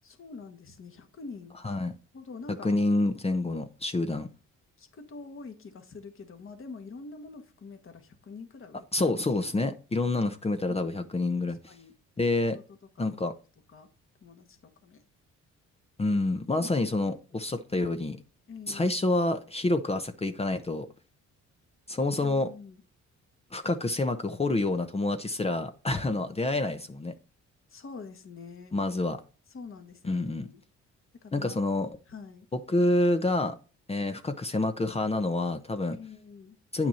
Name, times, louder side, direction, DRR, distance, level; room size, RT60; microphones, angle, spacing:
voice 1, 0.0-1.6 2.1-2.8 3.4-3.6 4.8-8.9 11.7-11.9 12.5-12.6 13.0-13.1 13.7-13.9 14.2-15.0 18.5-19.0 22.2-22.8 27.7-28.8 29.5-30.6 31.2-31.7 32.1-32.5 35.9-36.6, left 4 dB, 45° left, 1.7 m, -46 dB
voice 2, 2.5-4.3 8.9-11.7 12.2-12.6 13.0-13.3 16.0-18.2 18.7-20.9 21.9-22.5 23.5-27.1 28.7-29.2 30.0-30.5 31.3-31.9 32.7-33.6 33.9-36.0 36.7-36.9, left 2 dB, 20° left, 0.8 m, -28 dB
9.0 x 5.9 x 4.3 m
cardioid pair, 90°, 30 cm